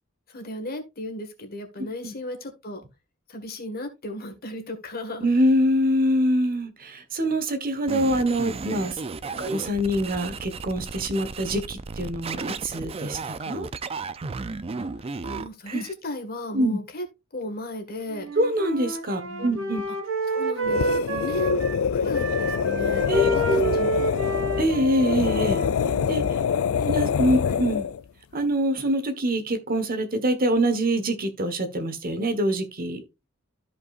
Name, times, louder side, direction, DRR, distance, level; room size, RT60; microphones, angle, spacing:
voice 1, 0.3-2.8 3.3-5.3 9.3-9.6 14.7-17.0 17.3-18.3 19.2-19.7 20.3-21.6 21.9-23.0 23.3-23.9 26.8-26.9 27.4-27.5, left 1 dB, 50° left, 1.7 m, -35 dB
voice 2, 5.2-13.7 15.7-15.8 16.5-16.8 18.4-19.8 23.1-23.7 24.6-25.6 26.1-26.4 26.8-27.9 28.3-33.0, equal, 45° right, 1.2 m, -25 dB
sound 1, 7.9-15.9, right 4 dB, 30° right, 0.4 m, -34 dB
Wind instrument woodwind instrument, 18.1-21.8 22.1-26.2, right 1 dB, 75° right, 2.3 m, -30 dB
sound 2, 20.6-28.0, left 7 dB, 80° left, 0.4 m, -25 dB
14.0 x 5.2 x 2.4 m
head